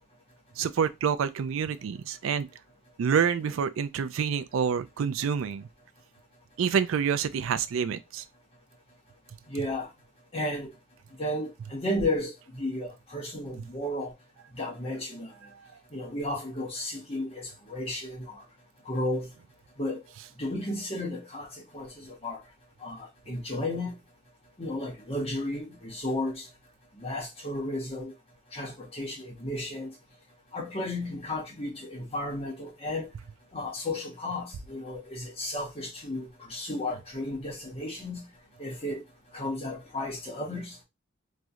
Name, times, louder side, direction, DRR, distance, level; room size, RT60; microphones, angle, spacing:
voice 1, 0.6-2.5 3.0-5.7 6.6-8.2 15.5-15.6, right 7 dB, 85° right, 0.4 m, -27 dB
voice 2, 9.5-9.9 10.3-10.7 11.2-14.1 14.5-15.3 15.9-18.4 18.8-19.3 19.8-20.0 20.4-22.4 22.8-23.9 24.6-26.5 27.0-28.1 28.5-29.9 30.5-33.1 33.5-38.2 38.6-39.0 39.3-40.7, left 1 dB, 30° left, 1.1 m, -33 dB
3.1 x 2.6 x 2.4 m
head